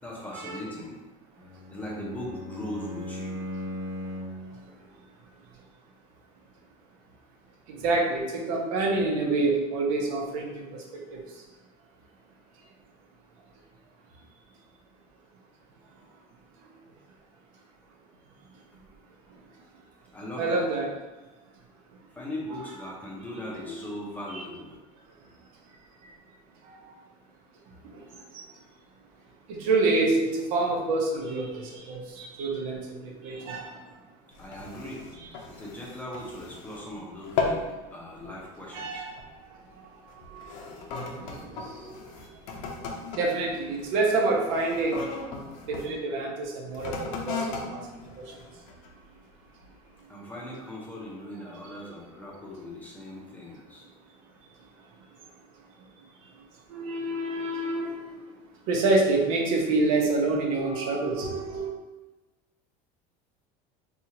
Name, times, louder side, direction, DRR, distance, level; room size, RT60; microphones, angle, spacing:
voice 1, 0.0-1.0 1.7-3.4 20.1-20.6 22.1-24.7 34.4-35.0 35.5-37.6 37.9-39.1 50.1-53.9, left 1 dB, 10° left, -3 dB, 0.6 m, -39 dB
Bowed string instrument, 1.3-4.5, left 1 dB, 55° right, 1.3 m, -37 dB
voice 2, 7.7-10.8 11.1-11.2 20.4-20.9 22.5-22.7 23.4-23.7 24.3-24.4 26.7-26.8 27.8-28.0 28.3-28.4 29.5-33.8 38.7-39.2 40.3-40.5 41.2-42.3 43.1-45.0 45.7-47.8 56.7-58.2 58.7-61.7, right 3 dB, 80° right, 0 dB, 0.8 m, -27 dB
sound 1, 34.3-36.9 37.2-37.7 38.1-38.4 39.1-39.4 40.1-45.9 46.7-49.0 49.6-49.7, left 4 dB, 85° left, 0.6 m, -36 dB
4.4 x 2.4 x 2.8 m, 1.1 s
cardioid pair, 160°, 17 cm